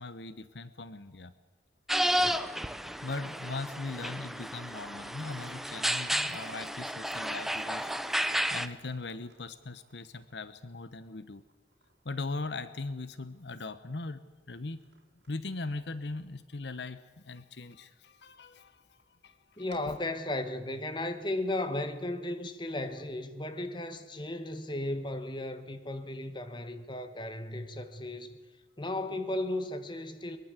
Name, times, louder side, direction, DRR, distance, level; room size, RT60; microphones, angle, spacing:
voice 1, 0.0-1.3 2.7-7.9 8.5-11.4 12.0-14.8 15.3-20.0 22.9-23.0, left 3 dB, 75° left, 1.0 m, -40 dB
sound 1, 1.9-8.7, equal, ahead, 0.8 m, -32 dB
sound 2, 5.0-17.2 17.7-17.8 18.5-18.6 19.0-19.1 19.5-20.1, right 3 dB, 75° right, 4.0 m, -56 dB
voice 2, 19.6-28.3 28.8-30.4, left 1 dB, 25° left, 1.7 m, -35 dB
22.5 x 22.0 x 8.2 m
head